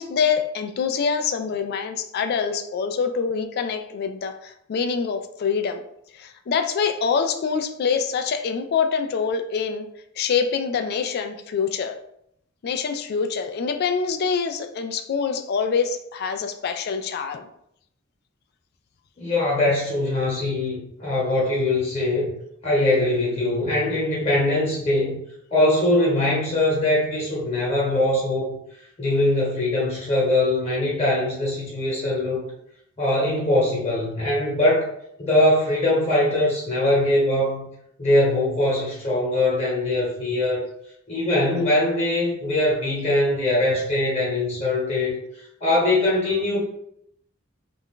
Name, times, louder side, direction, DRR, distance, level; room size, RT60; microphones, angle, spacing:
voice 1, 0.0-5.8 6.1-9.9 10.2-12.0 12.6-17.5, left 6 dB, 50° left, 7 dB, 0.3 m, -25 dB
voice 2, 19.2-22.3 22.6-25.2 25.5-28.5 29.0-32.4 33.0-34.9 35.2-37.7 38.0-40.7 41.1-45.2 45.6-46.6, left 1 dB, 30° left, -5 dB, 1.0 m, -22 dB
2.5 x 2.2 x 3.6 m, 0.74 s
head